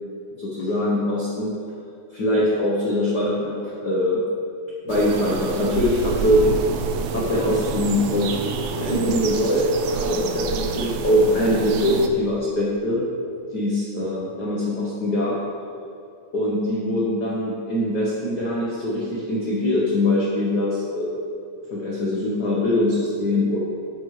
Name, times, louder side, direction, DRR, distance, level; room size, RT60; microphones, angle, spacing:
voice 1, 0.4-1.5 2.1-4.2 4.8-6.4 7.1-8.3 8.8-13.0 13.5-15.4 16.3-21.2 21.7-23.6, left 1 dB, 90° left, -5 dB, 0.9 m, -22 dB
sound 1, 4.9-12.1, right 6 dB, 85° right, 1.4 m, -29 dB
9.5 x 8.1 x 3.2 m, 2.4 s
omnidirectional pair, 3.4 m